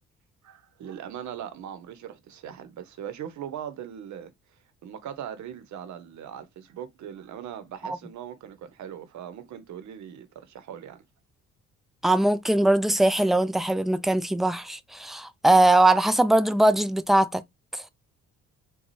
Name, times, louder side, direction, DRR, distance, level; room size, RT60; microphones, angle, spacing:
voice 1, 0.4-4.3 4.8-11.0, right 9 dB, 70° right, 0.8 m, -40 dB
voice 2, 12.0-17.4 17.7-17.8, right 1 dB, ahead, 0.3 m, -21 dB
4.0 x 2.3 x 3.0 m
cardioid pair, 90°, 30 cm